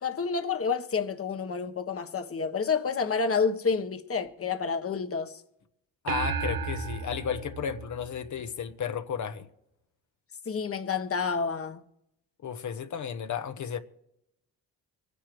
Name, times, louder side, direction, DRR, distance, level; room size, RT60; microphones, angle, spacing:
voice 1, 0.0-5.4 10.4-11.8, left 5 dB, 40° left, 1.4 m, -29 dB
voice 2, 6.0-9.5 12.4-13.8, left 7 dB, 55° left, 1.2 m, -33 dB
sound 1, 6.1-8.7, right 5 dB, 80° right, 1.2 m, -34 dB
25.0 x 10.0 x 3.3 m
supercardioid pair, 70°, 34 cm